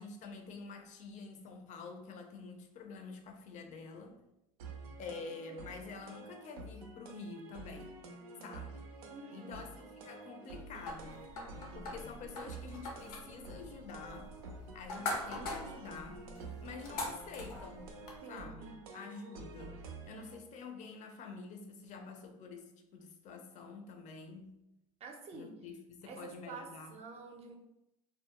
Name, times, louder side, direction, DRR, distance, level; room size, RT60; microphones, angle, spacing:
voice 1, 0.0-4.2 5.0-7.9 8.4-8.9 9.3-11.2 11.7-17.9 18.3-24.6 25.3-26.9, left 4 dB, 40° left, 5 dB, 0.5 m, -48 dB
sound 1, 4.6-20.3, right 3 dB, 85° right, 0.4 m, -49 dB
voice 2, 9.1-9.6 18.2-18.7 20.1-20.3 25.0-25.5 26.1-27.6, right 4 dB, 35° right, 3 dB, 0.5 m, -48 dB
sound 2, 10.9-18.2, left 2 dB, 85° left, 0.6 m, -43 dB
2.2 x 2.0 x 2.8 m, 0.86 s
hypercardioid pair, 95°, 18 cm